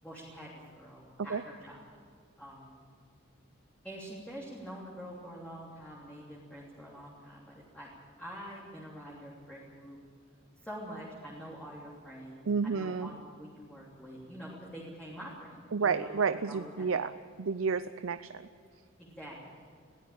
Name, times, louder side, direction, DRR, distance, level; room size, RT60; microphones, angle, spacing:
voice 1, 0.0-2.1 2.4-2.8 3.8-7.9 8.2-10.0 10.6-16.9 19.0-19.7, equal, 5° left, -5 dB, 3.2 m, -46 dB
voice 2, 12.5-13.1 15.7-17.1 17.4-18.4, right 5 dB, 85° right, 12 dB, 0.6 m, -30 dB
22.0 x 16.0 x 8.8 m, 2.2 s
head